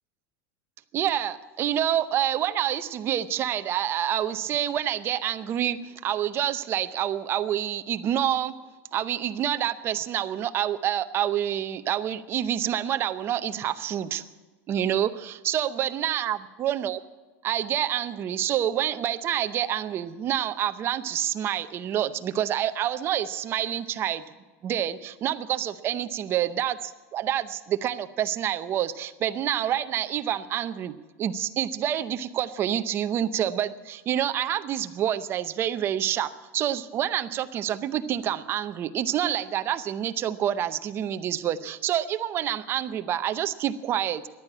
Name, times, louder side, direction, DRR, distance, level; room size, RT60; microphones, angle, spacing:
voice 1, 0.9-8.5 8.9-14.2 14.7-17.0 17.4-24.2 24.6-30.9 31.2-44.2, right 11 dB, 25° right, 11 dB, 0.7 m, -27 dB
15.0 x 11.0 x 8.6 m, 1.3 s
cardioid pair, 175°, 9 cm